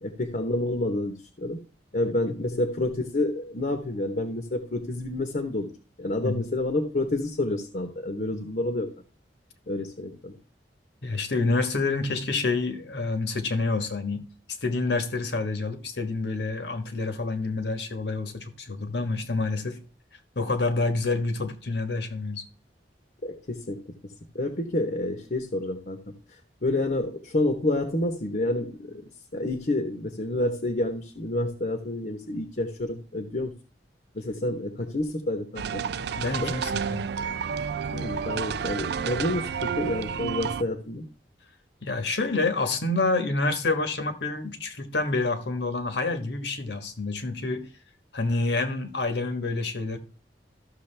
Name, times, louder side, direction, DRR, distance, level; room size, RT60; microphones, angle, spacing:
voice 1, 0.0-1.6 1.9-5.7 6.0-8.9 9.7-10.3 23.2-26.0 26.6-29.0 29.3-33.5 34.1-35.9 36.4-36.5 37.9-41.0, left 1 dB, 50° left, 1.0 m, -29 dB
voice 2, 11.0-14.2 14.6-19.8 20.3-22.4 36.2-37.1 41.8-47.6 48.1-50.0, left 3 dB, 70° left, 1.4 m, -28 dB
Prominent Snares and Xylophones Ambience, 35.6-40.6, right 6 dB, 65° right, 0.4 m, -30 dB
13.5 x 6.5 x 3.3 m
head